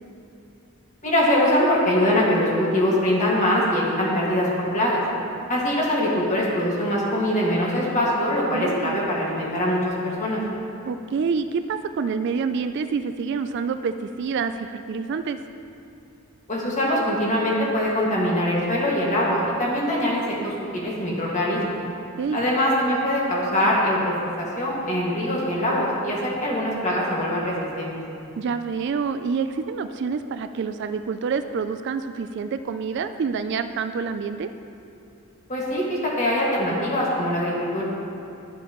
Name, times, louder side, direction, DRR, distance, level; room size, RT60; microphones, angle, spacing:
voice 1, 1.0-5.0 5.5-10.4 16.5-21.8 22.3-27.9 35.5-37.8, left 1 dB, 35° left, -5 dB, 1.9 m, -23 dB
voice 2, 8.5-9.0 10.9-15.4 22.2-22.4 28.4-34.5, right 5 dB, 50° right, 9 dB, 0.3 m, -27 dB
13.5 x 7.1 x 3.0 m, 2.8 s
head